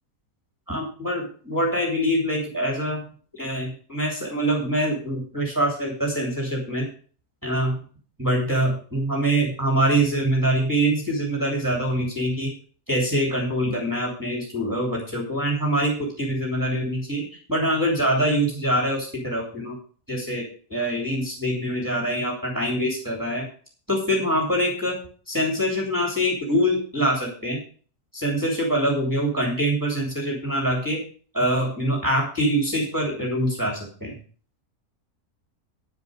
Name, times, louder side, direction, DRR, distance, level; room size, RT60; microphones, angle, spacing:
voice 1, 0.7-3.0 3.3-6.9 7.4-7.8 8.2-12.5 12.9-19.8 20.1-20.4 20.7-23.4 23.9-25.0 25.3-27.6 28.1-31.0 31.3-34.2, right 1 dB, 10° right, -2 dB, 3.0 m, -24 dB
10.0 x 7.6 x 6.4 m, 0.43 s
omnidirectional pair, 1.6 m